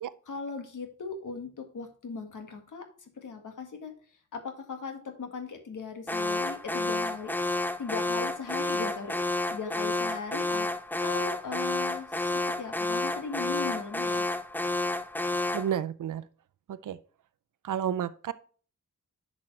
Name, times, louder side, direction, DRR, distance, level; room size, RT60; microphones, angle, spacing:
voice 1, 0.3-2.9 3.2-3.9 4.3-7.3 7.8-10.7 11.0-14.3, left 5 dB, 80° left, 1.8 m, -38 dB
Alarm, 6.1-15.8, left 2 dB, 5° left, 0.4 m, -30 dB
voice 2, 15.5-16.2 16.7-17.0 17.6-18.3, right 9 dB, 85° right, 0.5 m, -31 dB
10.5 x 6.1 x 3.2 m
wide cardioid pair, 180°, 31 cm